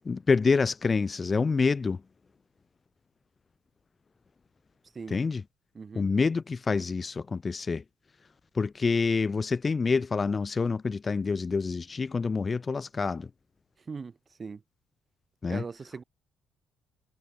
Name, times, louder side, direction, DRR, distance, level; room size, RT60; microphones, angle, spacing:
voice 1, 0.0-2.0 5.1-5.4 6.0-7.8 8.5-13.3 15.4-15.6, left 4 dB, 35° left, 0.6 m, -27 dB
voice 2, 5.7-6.1 13.9-14.6 15.5-16.0, right 5 dB, 35° right, 3.5 m, -40 dB
supercardioid pair, 70°, 0 cm